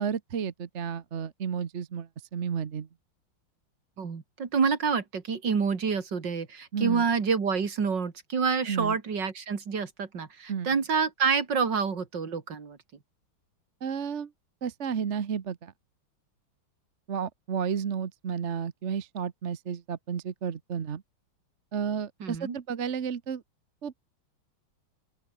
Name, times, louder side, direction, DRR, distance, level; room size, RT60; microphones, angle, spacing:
voice 1, 0.0-2.9 6.7-7.1 8.7-9.0 10.5-10.7 13.8-14.3 14.6-15.7 17.1-21.0 21.7-23.4 23.8-23.9, right 7 dB, 40° right, 1.1 m, -32 dB
voice 2, 4.0-12.8 22.2-22.6, right 5 dB, 55° right, 3.0 m, -28 dB
open air
omnidirectional pair, 2.3 m